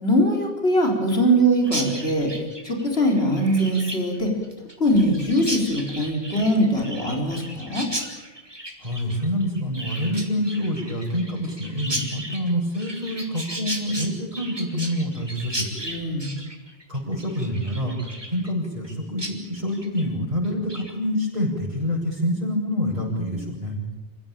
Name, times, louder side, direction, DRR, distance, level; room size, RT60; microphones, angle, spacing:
voice 1, 0.0-2.3 2.6-4.3 4.8-7.9 15.8-16.3, equal, 70° left, 1 dB, 4.6 m, -21 dB
Chirp tweet, 1.6-18.9 19.2-19.3 19.7-20.1 20.4-20.9, right 1 dB, 25° right, 3.6 m, -35 dB
voice 2, 8.8-15.7 16.9-23.8, equal, 40° right, -6 dB, 7.0 m, -27 dB
28.5 x 16.0 x 9.0 m, 1.2 s
omnidirectional pair, 1.1 m